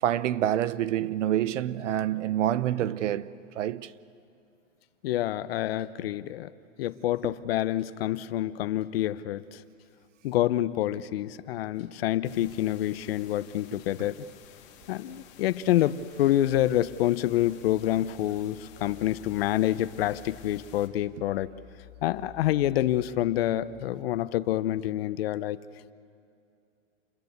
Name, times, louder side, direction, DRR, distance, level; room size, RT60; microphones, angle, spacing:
voice 1, 0.0-3.9 7.2-7.3, right 11 dB, 65° right, 0.9 m, -27 dB
voice 2, 5.0-6.5 6.8-9.6 10.2-14.2 14.9-21.5 22.0-25.6, left 13 dB, 50° left, 0.8 m, -27 dB
sound 1, 12.2-20.9, left 10 dB, 30° left, 2.0 m, -53 dB
sound 2, 18.2-23.6, left 5 dB, 5° right, 6.0 m, -53 dB
28.5 x 21.0 x 8.1 m
supercardioid pair, 160°, 39 cm